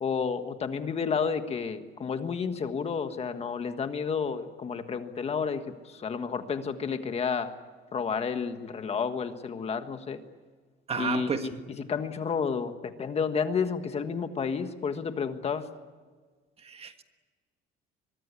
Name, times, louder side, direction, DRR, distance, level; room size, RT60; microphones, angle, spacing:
voice 1, 0.0-7.5 7.9-10.2 11.0-11.5 11.9-15.6, left 6 dB, 30° left, 8 dB, 1.5 m, -31 dB
voice 2, 10.9-11.6 16.6-17.0, right 6 dB, 30° right, 8 dB, 1.5 m, -32 dB
24.0 x 23.0 x 8.4 m, 1.5 s
cardioid pair, 165°, 20 cm